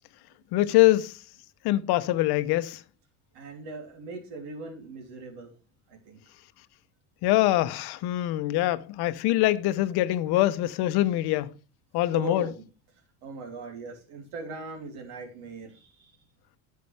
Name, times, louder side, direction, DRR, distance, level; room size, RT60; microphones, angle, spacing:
voice 1, 0.5-1.1 1.6-2.8 7.2-11.5 11.9-12.5, left 16 dB, 75° left, 0.8 m, -24 dB
voice 2, 3.3-5.5 5.9-6.2 12.0-12.6 13.2-16.2, right 3 dB, 85° right, 3.0 m, -40 dB
9.7 x 7.5 x 3.3 m
cardioid pair, 120°, 39 cm